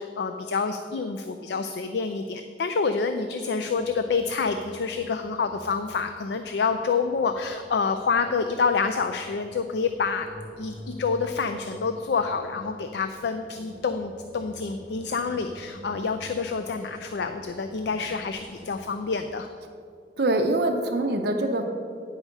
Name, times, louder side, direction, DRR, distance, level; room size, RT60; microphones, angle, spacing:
voice 1, 0.0-10.3 10.6-19.5, left 5 dB, 70° left, 7 dB, 0.4 m, -27 dB
sound 1, 3.7-19.2, equal, 45° left, 1.1 m, -48 dB
voice 2, 20.2-21.6, right 1 dB, 60° right, 3 dB, 0.6 m, -24 dB
9.6 x 4.8 x 6.5 m, 2.3 s
head